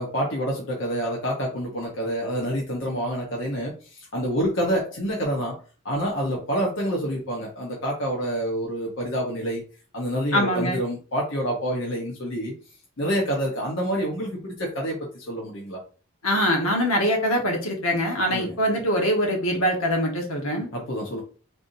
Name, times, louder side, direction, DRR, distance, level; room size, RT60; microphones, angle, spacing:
voice 1, 0.0-5.6 5.8-9.6 9.9-12.5 13.0-15.8 18.3-18.5 20.7-21.2, equal, 55° left, -3 dB, 1.0 m, -27 dB
voice 2, 10.3-10.8 16.2-20.7, equal, 75° left, 1 dB, 1.3 m, -23 dB
4.0 x 3.4 x 2.7 m, 0.37 s
head